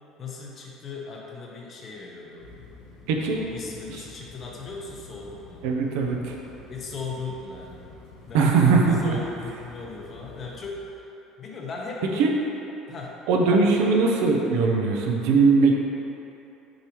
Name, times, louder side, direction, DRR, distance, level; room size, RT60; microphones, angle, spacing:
voice 1, 0.2-2.5 3.5-5.7 6.7-7.8 8.3-8.6 9.0-11.1 11.4-12.3 12.9-13.2, left 4 dB, 40° left, -2 dB, 1.0 m, -37 dB
sound 1, 2.4-10.7, left 3 dB, 85° left, 1.2 m, -48 dB
voice 2, 3.1-3.4 3.9-4.0 5.6-6.4 8.3-9.2 12.2-12.3 13.3-15.7, right 4 dB, 85° right, 0 dB, 0.7 m, -20 dB
6.5 x 4.8 x 3.0 m, 3.0 s
cardioid pair, 115°, 0 cm